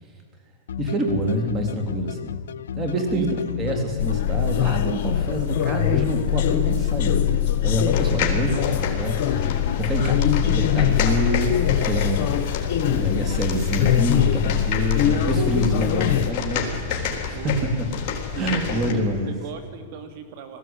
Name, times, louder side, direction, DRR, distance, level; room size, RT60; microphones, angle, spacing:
sound 1, 0.7-10.3, left 8 dB, 85° left, 0.4 m, -32 dB
voice 1, 0.8-2.3 2.7-3.3 3.6-11.6 11.9-18.1 18.3-19.3, equal, 20° right, 3 dB, 3.5 m, -26 dB
sound 2, 4.0-16.3, left 10 dB, 55° left, 1.3 m, -23 dB
sound 3, 7.9-18.9, left 7 dB, 40° left, 3.9 m, -30 dB
voice 2, 17.3-17.6 18.3-20.6, right 7 dB, 55° right, 7 dB, 2.8 m, -36 dB
19.5 x 15.0 x 9.0 m, 2.2 s
hypercardioid pair, 130°, 0 cm